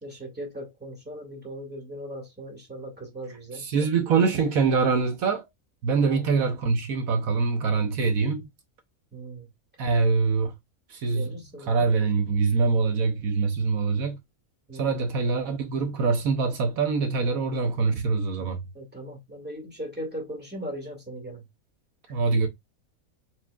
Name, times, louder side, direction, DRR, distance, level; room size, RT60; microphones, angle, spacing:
voice 1, 0.0-3.7 6.0-6.2 9.1-9.5 11.1-11.9 14.7-15.0 18.4-21.4, right 1 dB, 5° right, 2.0 m, -38 dB
voice 2, 3.5-5.5 5.8-8.4 9.8-10.5 10.9-11.4 11.7-14.2 14.7-18.6 22.1-22.5, right 4 dB, 75° right, 1.3 m, -24 dB
4.5 x 4.3 x 2.3 m
omnidirectional pair, 1.5 m